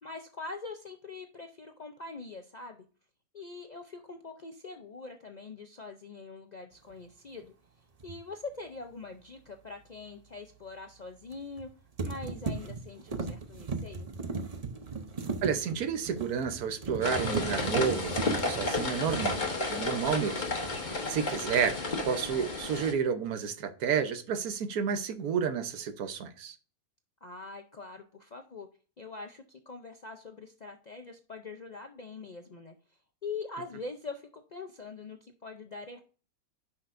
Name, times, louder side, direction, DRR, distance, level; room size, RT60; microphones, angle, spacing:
voice 1, 0.0-2.9 3.3-7.5 8.0-11.7 12.0-14.1 27.2-28.7 29.0-32.7 33.2-36.0, left 4 dB, 55° left, 5 dB, 0.5 m, -43 dB
sound 1, 8.0-8.2 11.3-11.7 12.0-20.2 20.5-20.9, right 4 dB, 35° right, 0.6 m, -37 dB
voice 2, 15.4-18.1 18.5-19.4 19.7-20.4 20.8-21.7 22.0-26.5, right 7 dB, 85° right, 9 dB, 1.4 m, -30 dB
sound 2, 17.0-22.9, left 3 dB, 35° left, 1.3 m, -32 dB
10.5 x 5.8 x 2.5 m, 0.39 s
omnidirectional pair, 1.5 m